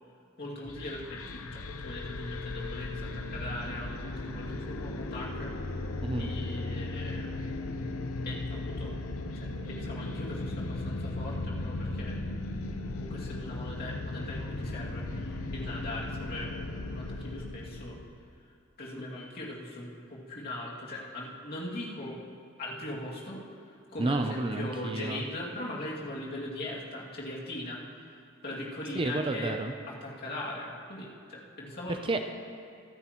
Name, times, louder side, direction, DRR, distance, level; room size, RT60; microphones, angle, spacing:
voice 1, 0.4-5.5 6.1-7.4 8.2-8.9 9.3-12.2 12.5-18.0 18.8-22.2 22.6-29.5 29.9-32.0, left 1 dB, 45° left, -5 dB, 2.4 m, -40 dB
sound 1, 0.6-18.1, left 2 dB, 80° left, 0.8 m, -36 dB
voice 2, 24.0-25.2 28.9-29.7 31.9-32.2, right 2 dB, 25° right, 6 dB, 0.5 m, -30 dB
23.5 x 9.6 x 3.0 m, 2.3 s
head